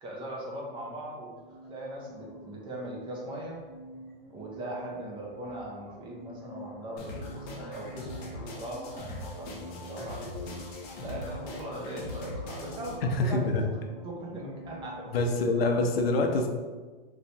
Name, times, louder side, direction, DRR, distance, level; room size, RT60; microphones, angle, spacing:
voice 1, 0.0-1.3 1.7-3.6 4.3-10.3 11.0-13.6 14.0-15.2, right 1 dB, 15° right, -2 dB, 0.5 m, -40 dB
sound 1, 1.4-15.8, right 1 dB, ahead, 0.9 m, -48 dB
sound 2, 7.0-13.0, left 2 dB, 30° left, 0.6 m, -41 dB
voice 2, 13.1-13.6 15.1-16.5, left 2 dB, 80° left, 4 dB, 0.6 m, -25 dB
3.1 x 2.8 x 2.7 m, 1.4 s
hypercardioid pair, 135°, 30 cm